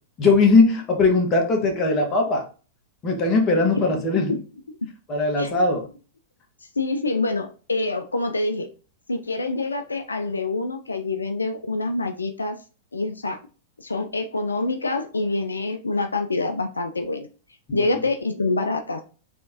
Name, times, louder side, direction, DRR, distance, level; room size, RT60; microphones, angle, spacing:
voice 1, 0.2-2.5 3.0-4.4 5.1-5.9 17.7-17.9, left 3 dB, 30° left, 2 dB, 1.4 m, -19 dB
voice 2, 6.8-8.7 9.1-12.6 12.9-13.4 13.8-17.3 17.7-19.0, left 2 dB, 80° left, 6 dB, 0.4 m, -26 dB
4.3 x 3.5 x 2.7 m, 0.36 s
figure-of-eight pair, 100°, 0 cm